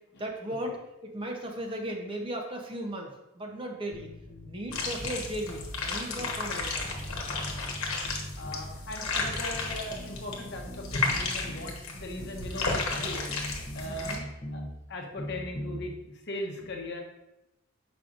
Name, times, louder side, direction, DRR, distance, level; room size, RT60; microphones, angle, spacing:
voice 1, 0.2-0.8 1.1-4.1 4.4-7.2 7.4-7.6 13.8-14.2, right 1 dB, 25° right, 2 dB, 0.7 m, -37 dB
sound 1, 3.9-5.7 6.2-8.8 9.2-11.7 12.2-14.7 15.2-15.8, equal, 20° left, 0.6 m, -42 dB
sound 2, 4.7-14.2, left 3 dB, 70° left, 1.1 m, -33 dB
voice 2, 7.5-8.0 8.4-13.3 13.6-14.6 14.9-17.0, left 1 dB, 55° left, 1 dB, 0.9 m, -39 dB
7.3 x 5.1 x 2.5 m, 0.92 s
head